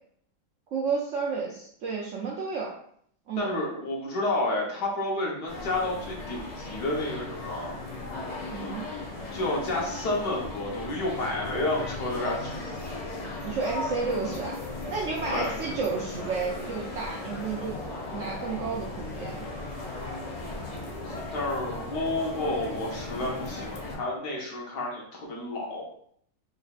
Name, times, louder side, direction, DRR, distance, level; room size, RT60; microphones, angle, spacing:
voice 1, 0.7-2.7 3.3-3.5 8.5-8.8 13.4-14.6 14.9-17.8 18.1-19.4, right 4 dB, 70° right, -2 dB, 0.7 m, -31 dB
voice 2, 3.4-7.8 9.3-12.6 15.3-15.5 21.0-25.8, left 2 dB, 75° left, -3 dB, 1.6 m, -30 dB
sound 1, 5.5-24.0, left 2 dB, 55° left, 0.4 m, -36 dB
4.5 x 3.2 x 2.4 m, 0.65 s
omnidirectional pair, 1.8 m